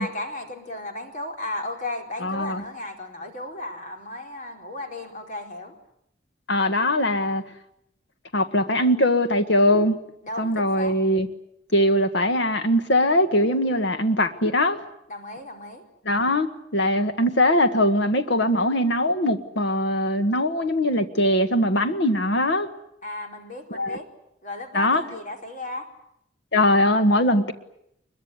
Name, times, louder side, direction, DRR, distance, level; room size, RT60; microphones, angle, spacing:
voice 1, 0.0-5.8 10.2-10.9 15.1-15.8 23.0-24.1 24.4-25.9, left 1 dB, 45° left, 3 dB, 4.5 m, -35 dB
voice 2, 2.2-2.6 6.5-7.4 8.3-10.0 10.4-11.3 11.7-14.8 16.1-16.5 16.7-22.7 23.7-24.0 24.7-25.0 26.5-27.5, left 1 dB, 70° left, 8 dB, 1.7 m, -21 dB
24.0 x 22.5 x 9.7 m, 0.77 s
head